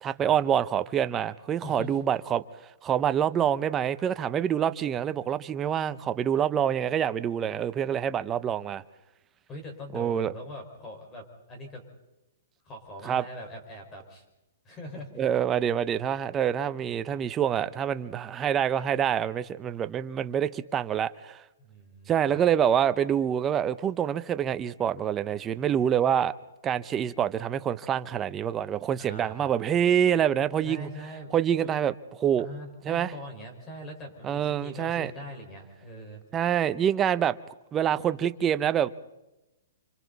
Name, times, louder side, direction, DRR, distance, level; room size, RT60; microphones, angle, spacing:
voice 1, 0.0-2.4 2.8-8.8 9.9-10.3 13.0-13.2 15.2-21.4 22.1-26.3 26.6-30.9 31.3-32.5 32.8-33.1 34.2-35.1 36.3-37.4 37.7-38.9, right 9 dB, 15° right, 0.7 m, -26 dB
voice 2, 1.6-2.0 9.5-11.8 12.6-14.2 14.6-15.3 21.6-22.4 29.0-29.5 30.6-31.3 31.6-31.7 32.4-36.2, equal, 15° left, 5.0 m, -42 dB
30.0 x 26.0 x 4.1 m
hypercardioid pair, 165°, 0 cm